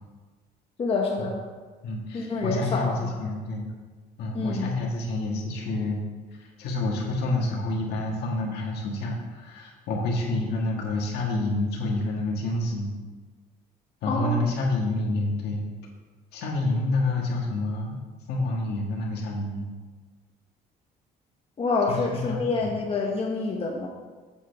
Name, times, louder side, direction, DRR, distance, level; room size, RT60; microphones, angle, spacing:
voice 1, 0.8-1.4 2.1-3.1 4.3-4.7 14.0-14.4 21.6-23.9, left 3 dB, 35° left, -1 dB, 1.0 m, -27 dB
voice 2, 1.8-3.7 4.2-6.0 6.6-12.9 14.0-15.6 16.3-18.0 18.3-19.7 21.9-22.7, left 2 dB, 75° left, -1 dB, 1.9 m, -28 dB
8.1 x 8.1 x 3.5 m, 1.4 s
cardioid pair, 110°, 17 cm